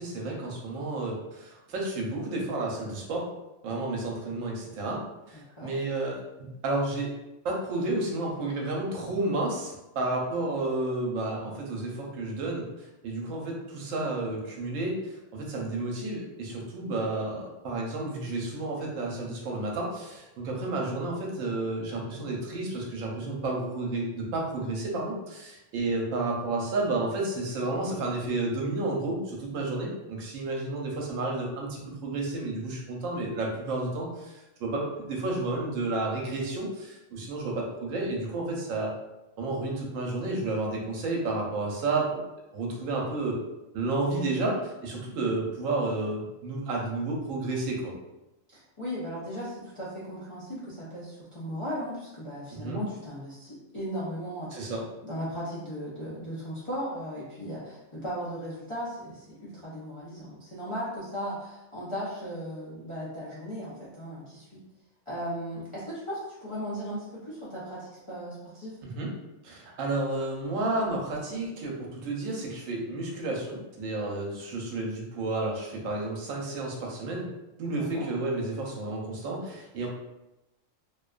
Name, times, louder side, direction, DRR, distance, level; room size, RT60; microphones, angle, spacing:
voice 1, 0.0-3.3 3.6-5.0 5.3-6.2 6.6-7.1 7.4-12.6 13.0-38.9 39.4-42.2 42.5-43.3 43.7-47.9 52.5-52.8 54.5-54.9 68.8-69.1 69.4-77.3 77.6-79.9, right 2 dB, 85° right, -1 dB, 1.0 m, -31 dB
voice 2, 5.3-5.7 48.5-54.5 55.0-64.4 65.1-68.8 77.6-78.0, equal, 45° left, -10 dB, 0.4 m, -37 dB
2.5 x 2.2 x 2.3 m, 0.95 s
omnidirectional pair, 1.3 m